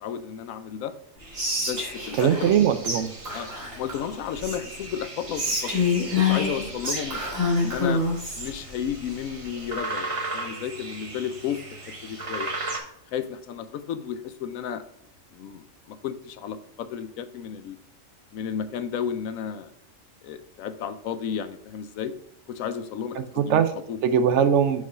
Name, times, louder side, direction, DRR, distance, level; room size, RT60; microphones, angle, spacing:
voice 1, 0.0-0.9 1.6-2.5 3.3-3.5 3.8-5.7 6.1-7.3 7.6-8.0 8.4-11.6 12.0-12.5 13.1-14.8 15.3-17.8 18.3-19.7 20.2-22.1 22.5-23.6 23.9-24.0, left 8 dB, 90° left, 11 dB, 1.0 m, -33 dB
sound 1, 1.2-12.8, right 2 dB, 30° right, 0.9 m, -37 dB
Whispering, 1.3-2.6 2.8-3.0 3.2-4.8 5.3-8.5, left 4 dB, 90° right, 2.2 m, -26 dB
voice 2, 2.2-3.1 23.2-23.7 24.0-24.8, right 8 dB, 70° right, 11 dB, 0.9 m, -21 dB
4.9 x 4.6 x 5.3 m, 0.70 s
omnidirectional pair, 1.4 m